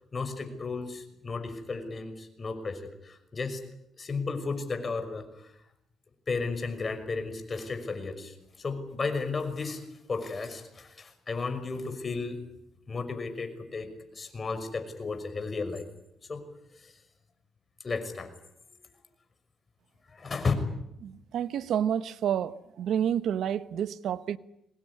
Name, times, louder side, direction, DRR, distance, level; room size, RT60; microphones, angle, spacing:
voice 1, 0.1-3.6 4.0-5.5 6.3-9.8 10.1-12.4 12.9-15.9 16.3-16.4 16.8-16.9 17.8-18.3 20.1-20.5, left 4 dB, 35° left, 5.9 m, -34 dB
voice 2, 21.0-22.5 22.8-24.4, right 9 dB, 75° right, 0.9 m, -29 dB
24.0 x 19.5 x 9.9 m
cardioid pair, 75°, 0 cm